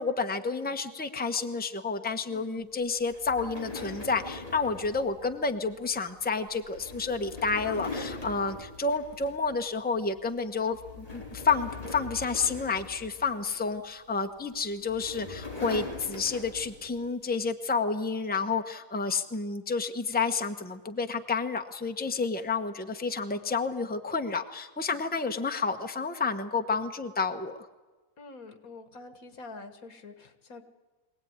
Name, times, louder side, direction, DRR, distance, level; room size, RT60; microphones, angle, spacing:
voice 1, 0.0-27.6, left 4 dB, 5° left, 7 dB, 1.0 m, -30 dB
voice 2, 2.2-2.7 28.2-30.6, left 3 dB, 80° left, 9 dB, 2.1 m, -46 dB
sound 1, 3.1-9.6 10.0-10.3 10.7-13.7 14.5-17.0, left 3 dB, 25° left, 4.6 m, -41 dB
23.5 x 17.5 x 9.5 m, 1.2 s
omnidirectional pair, 1.5 m